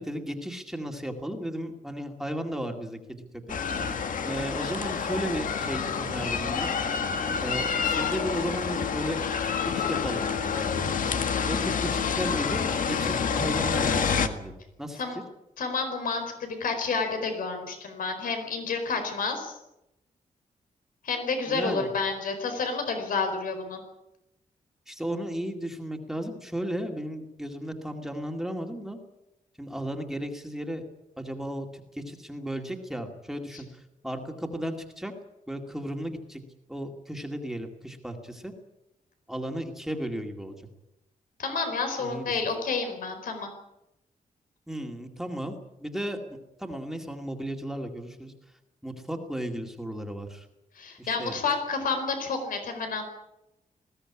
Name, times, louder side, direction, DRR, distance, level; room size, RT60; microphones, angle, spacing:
voice 1, 0.0-3.2 4.2-6.7 7.4-10.9 11.5-14.5 14.8-15.2 21.5-21.9 24.9-29.0 29.6-30.8 31.2-35.1 35.5-36.4 36.7-38.5 39.3-40.5 42.0-42.4 44.7-48.3 48.8-50.5 51.0-51.4, right 1 dB, 5° right, 3 dB, 2.3 m, -35 dB
sound 1, 3.5-14.3, left 6 dB, 70° left, 1.8 m, -28 dB
voice 2, 15.6-19.6 21.0-23.8 41.4-43.5 50.7-53.0, left 4 dB, 90° left, 6 dB, 4.6 m, -30 dB
21.0 x 16.5 x 9.9 m, 0.89 s
wide cardioid pair, 150°, 14 cm